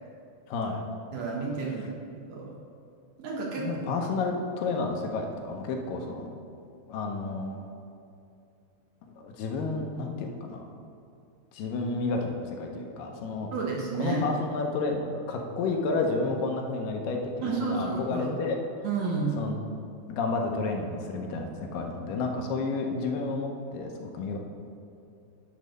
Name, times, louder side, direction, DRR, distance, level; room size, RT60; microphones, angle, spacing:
voice 1, 0.5-0.8 3.6-6.3 6.6-7.7 9.0-10.6 11.5-13.5 14.0-18.6 19.4-19.6 20.1-24.4, left 3 dB, 80° left, 2 dB, 2.5 m, -31 dB
voice 2, 1.1-2.5 3.2-3.7 13.5-14.2 17.4-18.3 18.8-19.4, right 4 dB, 65° right, -2 dB, 2.0 m, -31 dB
10.5 x 4.0 x 6.4 m, 2.5 s
omnidirectional pair, 3.9 m